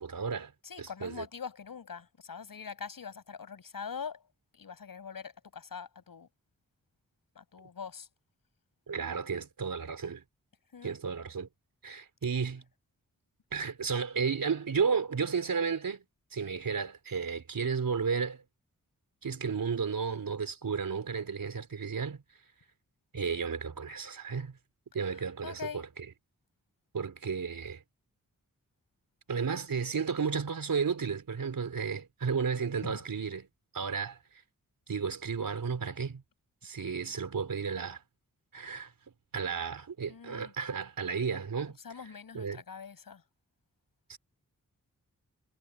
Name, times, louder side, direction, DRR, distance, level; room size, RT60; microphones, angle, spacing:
voice 1, 0.0-0.5 0.8-1.2 8.9-10.2 10.8-11.5 11.8-12.6 13.5-16.0 16.3-18.4 19.2-22.2 23.1-24.6 24.9-25.9 26.9-27.8 29.3-33.4 33.7-34.2 34.9-36.2 36.6-38.0 38.5-38.9 39.3-41.8 42.3-42.6 44.1-44.2, right 5 dB, 80° right, 4.5 m, -33 dB
voice 2, 0.6-4.2 4.5-6.3 7.3-8.1 10.7-11.0 25.1-25.8 32.8-33.0 40.1-40.5 41.8-43.2, left 6 dB, 85° left, 6.4 m, -43 dB
cardioid pair, 55°, 33 cm